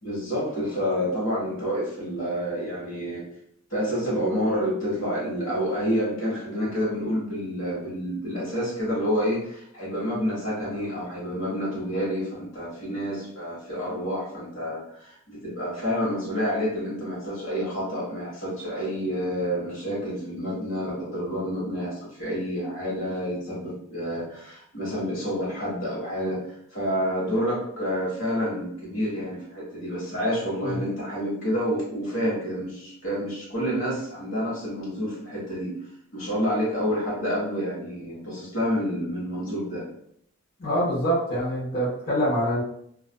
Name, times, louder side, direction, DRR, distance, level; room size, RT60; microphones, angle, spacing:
voice 1, 0.0-3.2 3.7-35.7 36.1-39.8, equal, 70° left, -6 dB, 1.2 m, -28 dB
voice 2, 40.6-42.6, equal, 45° left, -11 dB, 0.9 m, -25 dB
2.4 x 2.3 x 2.2 m, 0.70 s
head